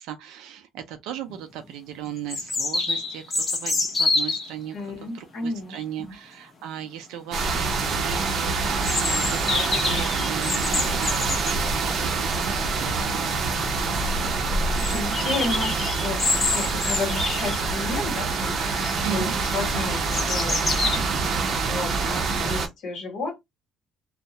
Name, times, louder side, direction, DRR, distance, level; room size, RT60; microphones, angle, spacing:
voice 1, 0.0-4.8 5.0-13.3 19.0-19.3, right 10 dB, 90° right, 0.5 m, -37 dB
sound 1, 1.3-1.4 2.3-4.5 8.8-11.6 13.2-13.3 13.6-13.7 14.0-14.1 14.8-18.0 18.4-18.9 19.4-21.0, left 3 dB, 30° left, 0.7 m, -27 dB
voice 2, 4.7-6.1 14.8-23.4, left 3 dB, 65° left, 1.1 m, -33 dB
sound 2, 7.3-22.7, right 4 dB, 50° right, 0.6 m, -26 dB
2.2 x 2.1 x 2.7 m
cardioid pair, 145°, 0 cm